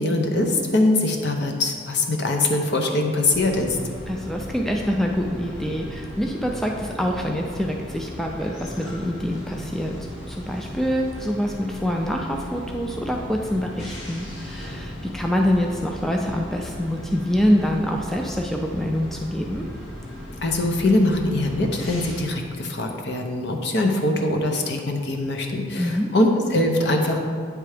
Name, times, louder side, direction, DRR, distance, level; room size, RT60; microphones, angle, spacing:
voice 1, 0.0-3.8 20.4-27.2, left 2 dB, 60° left, 2 dB, 0.8 m, -22 dB
sound 1, 3.3-22.2, left 1 dB, 75° left, 1.7 m, -37 dB
voice 2, 4.1-10.0 10.3-19.7 25.8-26.1, equal, ahead, 1 dB, 0.3 m, -25 dB
8.6 x 3.4 x 4.9 m, 2.1 s
head